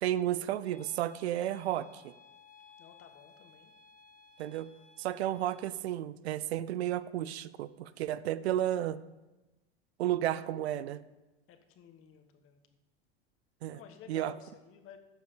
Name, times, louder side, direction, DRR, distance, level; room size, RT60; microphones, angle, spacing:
voice 1, 0.0-2.1 4.4-4.7 5.0-9.0 10.0-11.0 13.6-13.8 14.1-14.3, right 12 dB, 80° right, 16 dB, 0.6 m, -32 dB
sound 1, 0.7-5.7, left 5 dB, 25° left, 1.7 m, -59 dB
voice 2, 2.8-3.7 11.5-12.6 13.7-15.0, left 8 dB, 45° left, 7 dB, 1.5 m, -54 dB
9.6 x 6.5 x 6.9 m, 1.1 s
hypercardioid pair, 105°, 31 cm